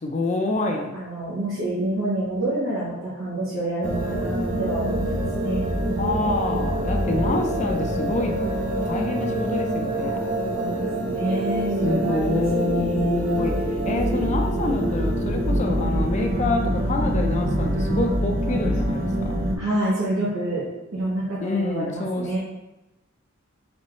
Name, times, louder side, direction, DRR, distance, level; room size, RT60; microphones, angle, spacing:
voice 1, 0.0-0.9 6.0-8.3 8.8-10.2 11.8-13.5 13.8-19.4 21.4-22.4, left 2 dB, 35° left, 3 dB, 0.5 m, -27 dB
voice 2, 0.5-5.7 10.5-13.4 19.5-20.6 20.9-22.4, right 1 dB, 85° right, -8 dB, 1.1 m, -28 dB
sound 1, 3.8-19.6, right 1 dB, 40° right, 0.6 m, -25 dB
4.2 x 3.5 x 3.0 m, 0.98 s
head